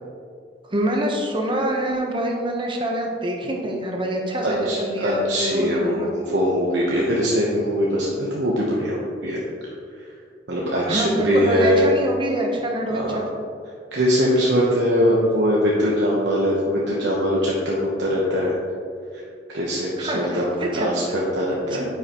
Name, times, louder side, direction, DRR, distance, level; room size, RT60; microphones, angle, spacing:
voice 1, 0.7-6.1 10.9-13.2 20.0-20.9 21.7-21.9, right 1 dB, 25° right, 0 dB, 0.9 m, -25 dB
voice 2, 4.4-9.4 10.0-10.1 10.5-11.8 12.9-13.2 13.9-18.5 19.1-19.2 19.5-21.9, equal, 75° right, -5 dB, 1.0 m, -22 dB
9.3 x 5.6 x 3.0 m, 2.3 s
head